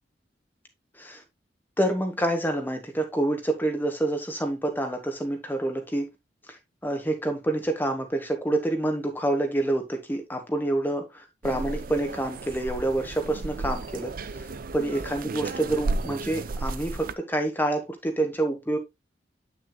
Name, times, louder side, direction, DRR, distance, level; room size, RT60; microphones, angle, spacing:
voice 1, 1.8-6.1 6.5-6.6 6.8-11.1 11.4-14.5 14.7-18.8, right 1 dB, 10° left, 1.2 m, -27 dB
sound 1, 11.4-17.1, right 3 dB, 55° right, 0.5 m, -33 dB
8.6 x 6.3 x 2.3 m
head